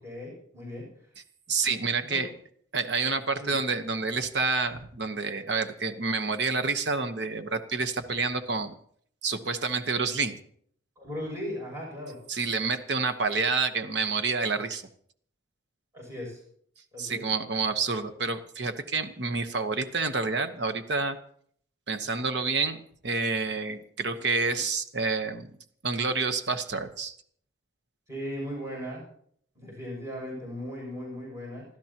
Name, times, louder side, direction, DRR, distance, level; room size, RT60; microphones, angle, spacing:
voice 1, 0.0-0.9 2.0-2.2 3.4-3.5 11.0-12.2 15.9-16.4 16.9-17.2 28.1-29.0 29.6-31.7, equal, 15° right, -3 dB, 7.2 m, -37 dB
voice 2, 1.5-2.3 2.7-8.7 9.2-10.4 12.3-14.8 17.0-21.2 21.9-22.8 23.0-25.5 25.8-27.1, right 4 dB, 60° right, 8 dB, 1.1 m, -28 dB
28.0 x 12.5 x 3.0 m, 0.62 s
head